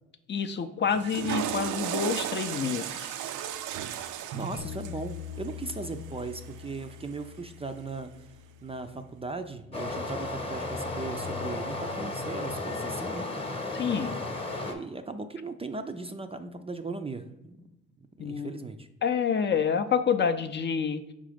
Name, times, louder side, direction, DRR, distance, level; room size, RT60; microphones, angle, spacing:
voice 1, 0.3-3.2 13.7-14.2 18.2-18.5 19.0-21.1, left 6 dB, 35° left, 7 dB, 0.5 m, -28 dB
Water / Toilet flush, 0.9-7.1, right 10 dB, 85° right, 0.5 m, -35 dB
voice 2, 4.2-8.3 8.6-13.3 14.5-17.7 18.2-18.9, right 3 dB, 20° right, 7 dB, 0.4 m, -38 dB
Bass guitar, 4.6-10.8, left 9 dB, 80° left, 0.6 m, -45 dB
Stream, 9.7-14.7, left 2 dB, 20° left, 0.9 m, -34 dB
5.1 x 3.7 x 5.0 m, 0.93 s
cardioid pair, 90°, 30 cm